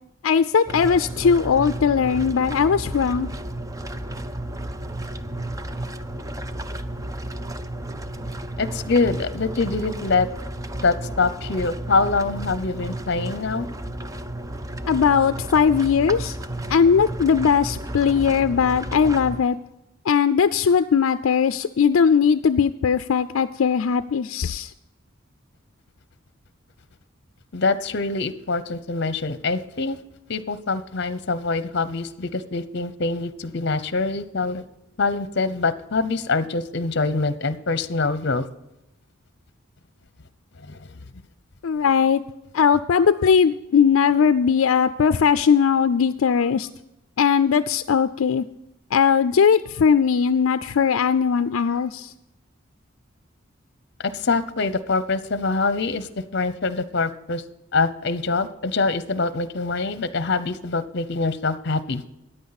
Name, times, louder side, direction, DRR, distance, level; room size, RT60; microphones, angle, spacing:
voice 1, 0.2-3.3 14.9-16.4 16.7-19.6 20.1-24.7 41.6-42.2 42.5-46.7 47.2-48.4 48.9-52.1, left 6 dB, 80° left, 12 dB, 0.4 m, -19 dB
sound 1, 0.7-19.4, right 1 dB, 15° right, 0.5 m, -32 dB
voice 2, 8.6-10.3 10.8-13.7 27.5-30.0 30.3-34.6 35.0-38.4 40.7-41.0 54.0-57.4 57.7-62.0, left 3 dB, 55° left, 14 dB, 0.8 m, -24 dB
14.5 x 9.9 x 4.1 m, 0.89 s
head